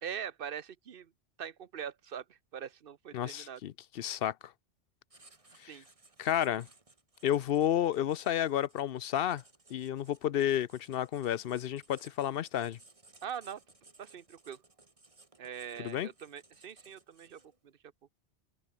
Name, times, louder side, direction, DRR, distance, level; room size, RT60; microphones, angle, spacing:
voice 1, 0.0-1.1 1.4-3.6 5.7-5.9 13.2-13.6 14.0-14.6 15.4-17.7, right 8 dB, 60° right, 1.0 m, -42 dB
voice 2, 3.1-4.3 5.6-5.7 6.2-6.7 7.2-9.4 9.7-12.8 15.8-16.1, left 11 dB, 65° left, 0.7 m, -31 dB
Writing, 5.1-17.7, right 3 dB, 30° right, 1.9 m, -61 dB
omnidirectional pair, 1.1 m